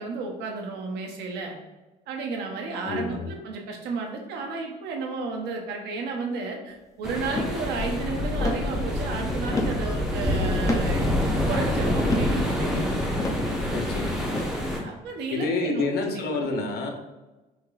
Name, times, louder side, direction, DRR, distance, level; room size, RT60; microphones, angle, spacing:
voice 1, 0.0-1.6 2.1-12.9 14.8-15.9 16.1-16.5, right 4 dB, 85° right, 2 dB, 1.0 m, -33 dB
voice 2, 2.8-3.3 13.7-14.2 15.3-16.9, left 3 dB, 70° left, 3 dB, 0.9 m, -28 dB
sound 1, 7.0-14.8, left 1 dB, 5° right, 1.1 m, -26 dB
sound 2, 7.4-7.6 8.4-8.7 9.5-9.8 10.6-10.9 12.1-12.4 13.2-13.5 14.3-14.5, left 1 dB, 20° left, 0.7 m, -28 dB
6.0 x 2.9 x 2.6 m, 1.1 s
cardioid pair, 110°, 17 cm